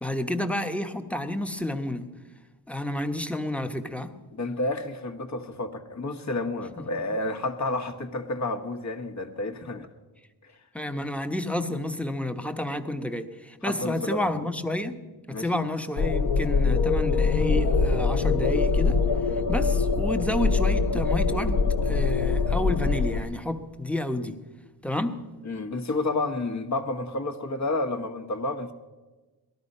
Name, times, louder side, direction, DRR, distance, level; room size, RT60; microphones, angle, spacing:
voice 1, 0.0-2.1 2.7-4.1 6.8-6.9 10.7-15.0 15.4-19.0 19.5-24.4 24.8-25.2, left 1 dB, 5° left, 6 dB, 1.1 m, -30 dB
voice 2, 4.3-9.9 10.4-10.5 13.6-14.3 15.3-15.5 25.4-28.7, left 2 dB, 45° left, 7 dB, 1.4 m, -30 dB
sound 1, 16.0-23.2, left 4 dB, 70° left, 1.0 m, -23 dB
18.5 x 13.5 x 5.5 m, 1.2 s
wide cardioid pair, 110°, 40 cm